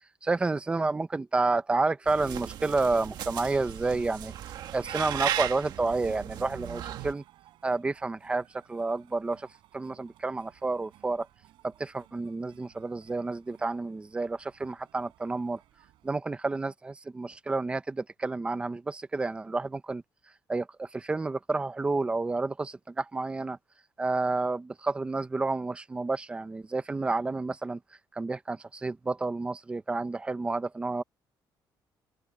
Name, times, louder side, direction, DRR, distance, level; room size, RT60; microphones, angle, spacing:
voice 1, 0.2-4.3 4.7-7.2 7.6-9.5 9.7-11.3 11.6-15.6 16.0-20.0 20.5-23.6 24.0-27.8 28.1-31.0, right 3 dB, 15° right, 0.8 m, -30 dB
sound 1, 2.1-7.1, right 11 dB, 60° right, 1.5 m, -36 dB
sound 2, 2.4-16.1, right 15 dB, 80° right, 6.3 m, -60 dB
open air
cardioid pair, 175°, 8 cm